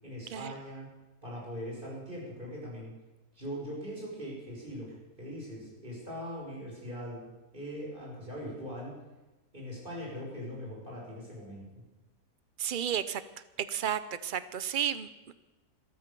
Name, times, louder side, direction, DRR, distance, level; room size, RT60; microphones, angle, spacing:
voice 1, 0.0-0.9 1.2-2.9 3.3-7.2 7.5-9.0 9.5-11.7, equal, 30° right, -3 dB, 6.1 m, -41 dB
voice 2, 12.6-13.2 13.7-15.3, right 9 dB, 80° right, 14 dB, 0.4 m, -32 dB
14.0 x 12.5 x 6.8 m, 1.1 s
omnidirectional pair, 1.7 m